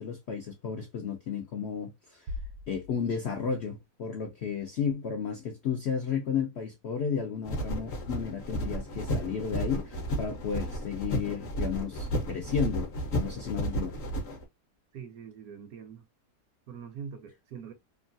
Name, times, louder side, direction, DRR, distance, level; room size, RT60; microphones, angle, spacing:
voice 1, 0.0-2.3 2.7-13.9, left 6 dB, 90° left, 0.5 m, -33 dB
sound 1, 2.3-4.1, left 2 dB, 90° right, 1.2 m, -42 dB
sound 2, 7.5-14.4, equal, 50° left, 0.8 m, -33 dB
voice 2, 14.9-16.1 16.7-17.7, right 7 dB, 70° right, 0.9 m, -43 dB
2.9 x 2.3 x 2.5 m
omnidirectional pair, 1.9 m